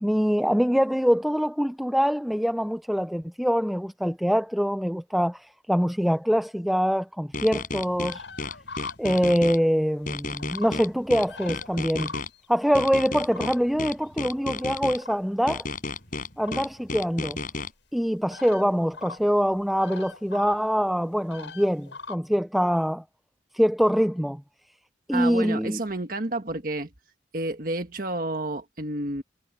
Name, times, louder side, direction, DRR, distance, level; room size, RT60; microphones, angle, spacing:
voice 1, 0.0-8.2 9.0-12.1 12.5-15.7 16.4-17.4 17.9-23.0 23.5-24.4 25.1-25.8, equal, ahead, 0.4 m, -24 dB
sound 1, 7.3-9.6 10.1-12.3 12.7-15.0 15.5-17.7, left 3 dB, 45° left, 5.1 m, -32 dB
sound 2, 8.0-10.7 11.1-12.4 12.9-13.8 14.6-15.2 16.4-16.6 17.2-17.3 18.3-18.7 18.9-19.2 19.5-20.6 21.3-22.1, left 4 dB, 80° left, 6.9 m, -41 dB
voice 2, 25.1-26.9 27.3-29.2, right 2 dB, 50° right, 1.5 m, -30 dB
head